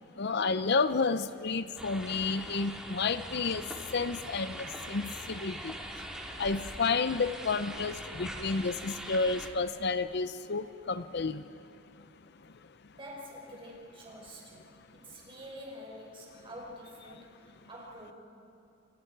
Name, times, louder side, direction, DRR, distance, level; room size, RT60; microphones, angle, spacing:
voice 1, 0.2-3.6 3.9-5.7 6.4-11.4, left 4 dB, 60° left, 12 dB, 0.7 m, -31 dB
sound 1, 1.8-9.5, right 1 dB, 5° right, 2.8 m, -42 dB
voice 2, 12.9-14.7 14.9-18.1, equal, 30° right, -2 dB, 5.3 m, -47 dB
28.0 x 27.0 x 4.8 m, 2.8 s
head